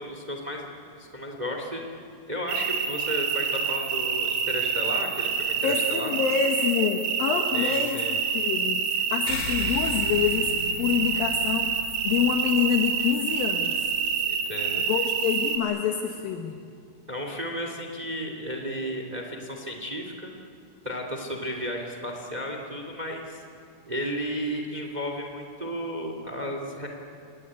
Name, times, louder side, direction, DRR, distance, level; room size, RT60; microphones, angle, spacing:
voice 1, 0.0-1.8 2.3-6.1 7.5-8.1 14.3-14.8 17.1-20.3 20.8-23.4 23.9-26.9, equal, 30° right, 3 dB, 0.7 m, -33 dB
sound 1, 2.5-15.6, right 6 dB, 65° right, 4.1 m, -27 dB
voice 2, 5.6-8.0 8.3-10.5 10.8-13.8 14.9-16.6, left 8 dB, 75° left, 4 dB, 2.2 m, -27 dB
sound 2, 9.3-14.1, left 2 dB, 55° left, 5.5 m, -38 dB
29.0 x 18.5 x 9.9 m, 2.4 s
omnidirectional pair, 5.7 m